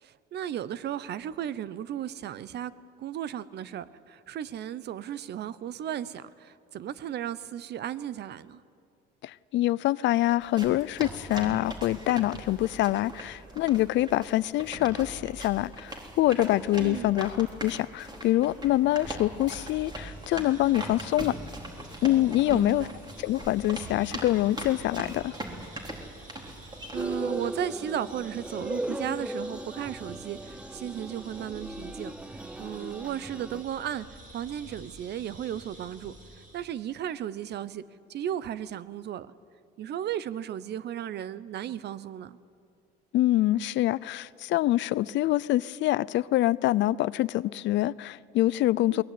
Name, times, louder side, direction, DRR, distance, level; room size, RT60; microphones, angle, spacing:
voice 1, 0.0-2.7 3.0-8.6 16.8-17.1 22.5-22.9 26.9-32.1 32.6-34.1 34.3-36.1 36.5-37.8 38.1-39.3 39.8-42.4 48.9-49.0, right 10 dB, 60° right, 0.9 m, -35 dB
voice 2, 9.2-21.4 22.0-22.9 23.2-25.4 43.1-49.0, left 15 dB, 70° left, 0.6 m, -25 dB
sound 1, 10.4-27.2, right 1 dB, 20° right, 4.2 m, -41 dB
sound 2, 19.2-37.0, right 2 dB, 45° right, 7.7 m, -50 dB
sound 3, 26.9-33.6, right 1 dB, 5° right, 0.5 m, -37 dB
22.0 x 19.5 x 9.4 m
cardioid pair, 95°, 20 cm